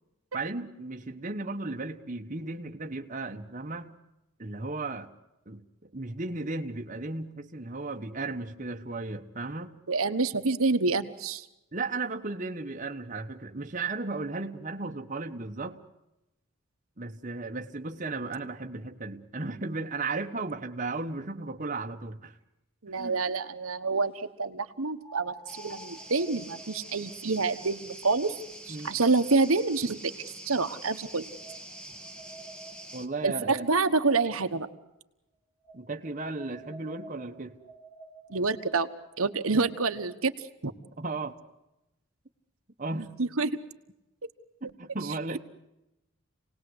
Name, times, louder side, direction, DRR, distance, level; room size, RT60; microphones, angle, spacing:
voice 1, 0.3-3.9 4.4-5.1 5.5-9.8 11.7-15.8 17.0-22.3 23.0-23.1 28.7-29.0 32.9-33.7 35.7-37.6 41.0-41.4 42.8-43.1 44.6-45.4, right 3 dB, 35° right, 3 dB, 1.2 m, -35 dB
voice 2, 9.9-11.4 22.8-28.3 28.7-30.1 30.4-31.2 33.2-34.7 38.3-38.9 39.2-40.3 40.6-40.7 43.2-43.5, right 3 dB, 75° right, 7 dB, 1.3 m, -27 dB
sound 1, 22.4-22.5 25.0-30.2 30.9-34.6 35.6-40.2, right 2 dB, 25° left, 4.4 m, -52 dB
sound 2, 25.5-33.1, right 1 dB, 5° left, 1.5 m, -45 dB
28.0 x 19.0 x 8.0 m, 0.93 s
head